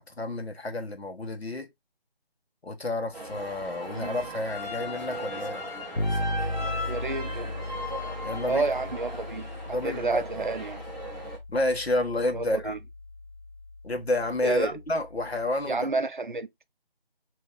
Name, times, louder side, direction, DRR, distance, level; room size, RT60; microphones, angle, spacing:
voice 1, 0.0-1.7 2.6-5.6 8.2-8.7 9.7-10.2 11.5-12.7 13.8-15.9, left 1 dB, 85° left, 1.4 m, -30 dB
sound 1, 3.1-11.4, equal, ahead, 0.6 m, -37 dB
Bass guitar, 6.0-15.6, left 2 dB, 50° left, 1.0 m, -37 dB
voice 2, 6.9-7.5 8.5-10.8 12.3-12.8 14.4-14.8 15.7-16.5, right 3 dB, 55° right, 0.5 m, -30 dB
6.8 x 2.9 x 2.3 m
figure-of-eight pair, 175°, 31 cm